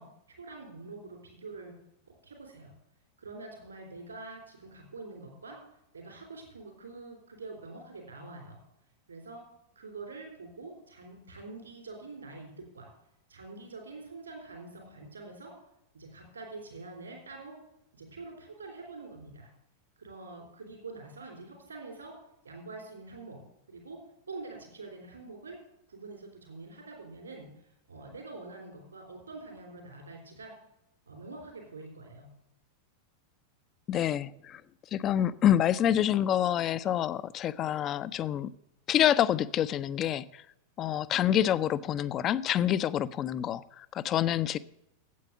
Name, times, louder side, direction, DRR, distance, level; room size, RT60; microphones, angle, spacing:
voice 1, 0.0-1.7 2.1-2.7 3.2-5.6 5.9-8.6 9.1-9.4 9.7-12.9 13.3-15.5 15.9-17.6 17.9-19.5 20.0-22.2 22.4-23.4 23.7-24.0 24.3-25.6 25.9-27.5 27.9-30.5 31.1-32.3, right 3 dB, 75° right, 1 dB, 3.3 m, -45 dB
voice 2, 33.9-34.6 34.9-38.5 38.9-40.4 40.8-44.6, left 11 dB, 30° left, 17 dB, 0.4 m, -27 dB
8.5 x 8.3 x 7.2 m, 0.83 s
figure-of-eight pair, 90°, 0 cm